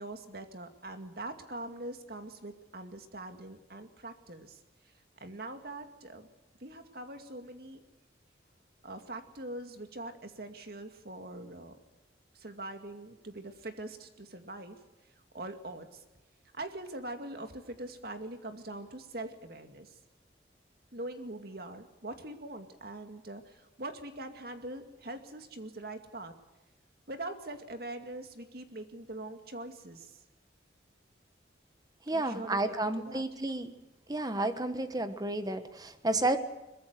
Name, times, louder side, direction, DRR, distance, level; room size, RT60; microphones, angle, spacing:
voice 1, 0.0-4.6 5.2-6.3 6.6-7.8 8.8-11.8 12.3-14.8 15.3-16.0 16.5-19.9 20.9-26.3 27.1-30.2 32.1-33.2, right 2 dB, 55° right, 7 dB, 2.2 m, -43 dB
voice 2, 32.1-33.7 34.1-36.4, right 2 dB, 20° right, 9 dB, 1.3 m, -31 dB
22.5 x 21.5 x 6.8 m, 1.0 s
head